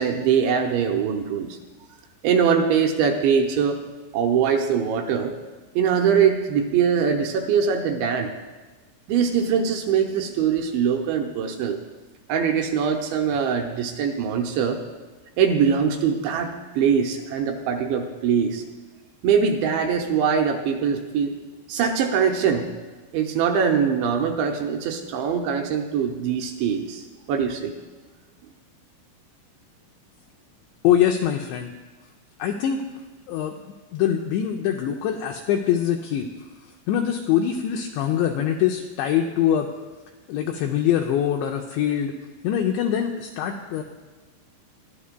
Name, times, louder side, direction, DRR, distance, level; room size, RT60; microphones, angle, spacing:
voice 1, 0.0-1.6 2.2-3.9 4.1-5.4 5.8-8.3 9.1-11.8 12.3-14.8 15.4-18.6 19.2-21.4 21.7-22.7 23.1-27.7, right 7 dB, 80° right, 3 dB, 2.7 m, -22 dB
voice 2, 30.8-31.7 32.4-32.8 33.3-33.6 33.9-36.3 36.9-39.7 40.3-42.1 42.4-43.8, left 10 dB, 90° left, 3 dB, 2.5 m, -23 dB
22.0 x 11.0 x 2.2 m, 1.2 s
omnidirectional pair, 5.7 m